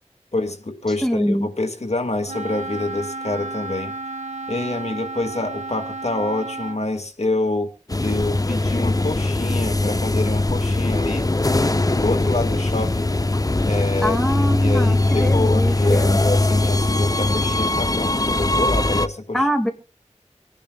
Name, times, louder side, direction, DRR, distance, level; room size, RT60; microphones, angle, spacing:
voice 1, 0.3-3.9 4.5-7.7 8.0-11.3 11.9-13.1 13.7-19.5, left 2 dB, 65° left, 5 dB, 1.9 m, -26 dB
voice 2, 1.0-1.5 14.0-16.2 19.3-19.7, equal, 5° left, 4 dB, 2.0 m, -23 dB
Wind instrument woodwind instrument, 2.3-6.8, right 3 dB, 70° right, 1.4 m, -32 dB
sound 1, 7.9-19.1, left 2 dB, 30° left, 0.6 m, -20 dB
26.0 x 10.5 x 2.3 m, 0.33 s
wide cardioid pair, 50°, 12 cm